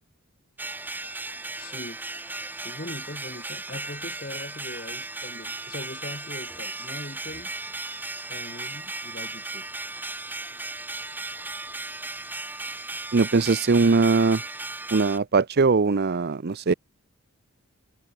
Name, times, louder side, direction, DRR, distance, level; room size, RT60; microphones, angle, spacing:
sound 1, 0.6-15.2, right 2 dB, 10° right, 1.0 m, -36 dB
voice 1, 1.6-2.0 2.6-7.5 8.3-9.7, left 1 dB, 40° left, 3.8 m, -40 dB
voice 2, 13.1-14.4 14.9-16.7, right 4 dB, 50° right, 0.6 m, -21 dB
head